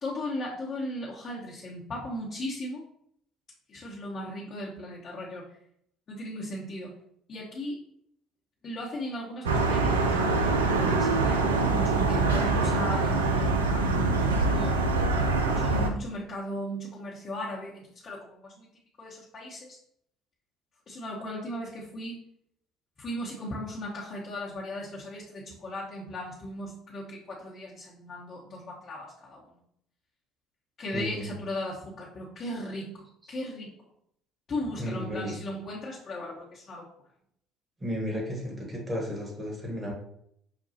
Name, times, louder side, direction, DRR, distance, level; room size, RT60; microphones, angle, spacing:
voice 1, 0.0-2.8 3.7-5.5 6.1-6.9 7.3-7.8 8.6-13.9 14.3-15.0 15.4-18.7 19.0-19.8 20.9-22.2 23.0-29.4 30.8-33.7 34.5-36.8, left 1 dB, 40° left, -6 dB, 1.0 m, -37 dB
sound 1, 9.4-15.9, right 3 dB, 80° right, 0.4 m, -24 dB
voice 2, 30.9-31.3 34.8-35.3 37.8-39.9, equal, 20° right, -1 dB, 1.4 m, -33 dB
5.8 x 2.3 x 2.8 m, 0.71 s
figure-of-eight pair, 55°, 0 cm